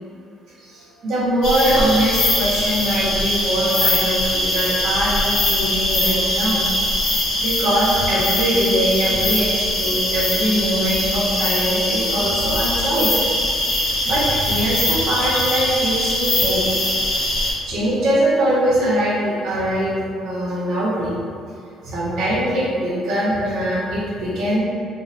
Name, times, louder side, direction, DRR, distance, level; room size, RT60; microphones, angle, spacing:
voice 1, 0.6-6.6 7.0-13.2 13.8-16.6 17.7-19.9 20.2-21.2 21.8-24.6, right 1 dB, 65° right, -8 dB, 1.1 m, -22 dB
sound 1, 1.4-17.5, left 1 dB, 90° left, 0.8 m, -21 dB
3.7 x 2.1 x 2.6 m, 2.3 s
cardioid pair, 135°, 0 cm